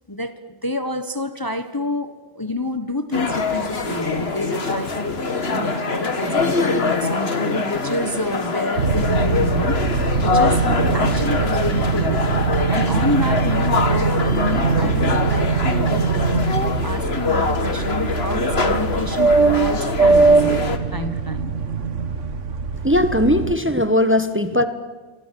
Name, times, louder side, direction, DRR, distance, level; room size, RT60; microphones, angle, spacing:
voice 1, 0.1-9.8 10.2-10.6 10.9-12.2 12.7-21.5, left 2 dB, 20° left, 10 dB, 1.2 m, -28 dB
sound 1, 3.1-20.8, left 3 dB, 60° left, 2.2 m, -24 dB
sound 2, 8.8-23.5, right 4 dB, 85° right, 1.7 m, -21 dB
voice 2, 22.8-24.6, left 1 dB, 10° right, 10 dB, 1.3 m, -18 dB
29.5 x 25.0 x 7.7 m, 1.3 s
omnidirectional pair, 1.2 m